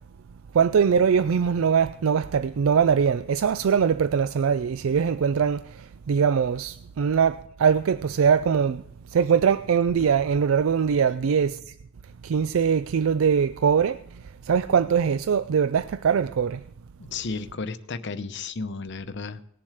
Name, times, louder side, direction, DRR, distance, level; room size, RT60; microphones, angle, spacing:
voice 1, 0.5-8.8 9.1-11.6 12.2-14.0 14.4-16.6, right 7 dB, 80° right, 0.4 m, -22 dB
voice 2, 17.0-19.4, left 4 dB, 60° left, 0.8 m, -33 dB
19.0 x 7.4 x 4.9 m
head